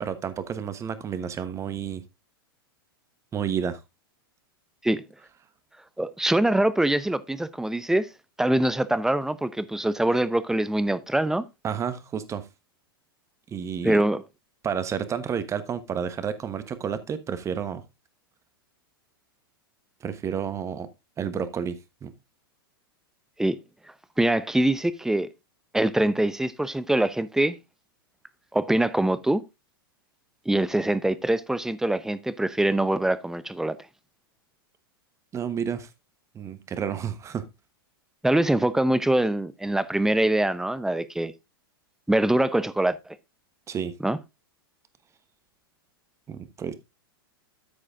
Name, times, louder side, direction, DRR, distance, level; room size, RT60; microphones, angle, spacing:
voice 1, 0.0-2.0 3.3-3.8 11.6-12.5 13.5-14.0 14.6-17.8 20.0-20.9 21.2-22.1 35.3-35.9 36.3-37.5 43.7-43.9 46.3-46.7, right 7 dB, 25° right, 1.3 m, -30 dB
voice 2, 6.0-8.1 8.4-11.4 13.8-14.2 23.4-23.6 24.2-25.3 25.7-27.6 28.5-29.4 30.5-33.8 38.2-41.3 42.1-43.2 44.0-44.2, right 1 dB, 5° right, 0.8 m, -23 dB
13.0 x 4.9 x 3.7 m
hypercardioid pair, 110°, 12 cm